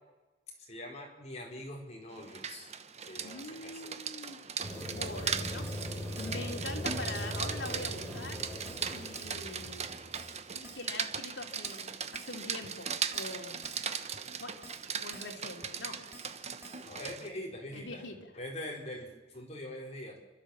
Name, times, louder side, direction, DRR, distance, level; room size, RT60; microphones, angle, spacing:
voice 1, 0.6-2.7 3.1-4.0 16.8-18.0 18.3-20.1, left 1 dB, 40° left, 0 dB, 4.8 m, -43 dB
Rain, 2.2-17.3, right 7 dB, 40° right, 1.0 m, -39 dB
voice 2, 3.2-4.4 4.8-5.7 6.2-8.4 8.9-10.0 10.5-13.6 14.4-14.6 15.0-16.0 17.7-18.3, left 2 dB, 85° left, 3 dB, 2.9 m, -43 dB
sound 1, 4.6-10.6, equal, 15° left, 5.3 m, -40 dB
Keyboard (musical), 5.2-5.3 5.7-5.9 6.2-6.4 6.7-6.8 7.2-7.4 7.7-7.9 8.2-8.3 8.6-8.9 9.1-9.4 9.6-9.7 10.1-10.4 10.6-10.9 11.1-11.2 11.6-11.9 12.1-12.4 12.6-12.7 13.1-13.4 13.6-13.9 14.1-14.2 14.6-14.9 15.1-15.4 15.6-15.7 16.1-16.4 16.6-16.8, right 2 dB, 15° right, 3.5 m, -51 dB
29.5 x 13.0 x 7.4 m, 1.2 s
head